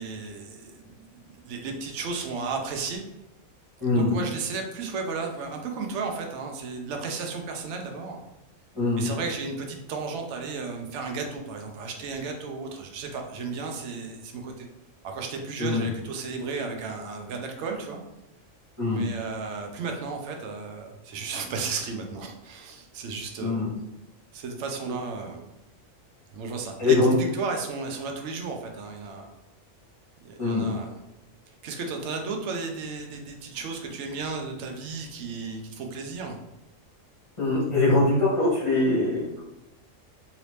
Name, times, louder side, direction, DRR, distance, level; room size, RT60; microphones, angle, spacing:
voice 1, 0.0-3.0 3.9-8.2 9.0-14.7 15.0-18.0 18.8-23.6 24.3-25.5 26.3-29.3 30.2-30.9 31.6-36.4, right 4 dB, 65° right, 3 dB, 0.9 m, -34 dB
voice 2, 3.8-4.1 8.7-9.1 15.6-15.9 18.8-19.0 23.4-23.7 24.9-25.0 26.8-27.1 30.4-30.7 37.4-39.4, left 2 dB, 25° left, -10 dB, 1.1 m, -23 dB
2.9 x 2.8 x 3.2 m, 0.95 s
omnidirectional pair, 1.4 m